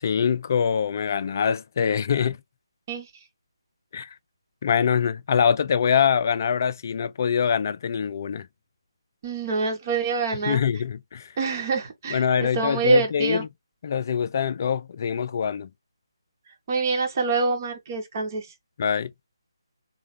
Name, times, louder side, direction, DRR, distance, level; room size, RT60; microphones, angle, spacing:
voice 1, 0.0-2.4 3.9-4.1 4.6-8.5 10.5-11.3 12.1-13.5 13.8-15.7 18.8-19.1, left 7 dB, 40° left, 0.3 m, -24 dB
voice 2, 9.2-10.6 11.4-13.4 16.7-18.5, right 3 dB, 35° right, 1.0 m, -25 dB
4.0 x 2.2 x 3.1 m
figure-of-eight pair, 155°, 3 cm